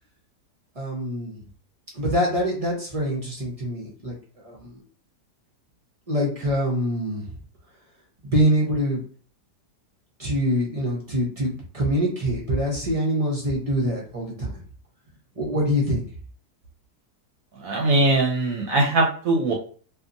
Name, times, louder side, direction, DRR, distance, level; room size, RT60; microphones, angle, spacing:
voice 1, 0.7-1.5 1.9-4.8 6.1-7.3 8.2-9.0 10.2-14.6 15.4-16.1, equal, 40° right, -4 dB, 0.5 m, -25 dB
voice 2, 17.6-19.5, right 2 dB, 65° right, -1 dB, 1.0 m, -21 dB
2.8 x 2.4 x 2.5 m, 0.43 s
omnidirectional pair, 1.7 m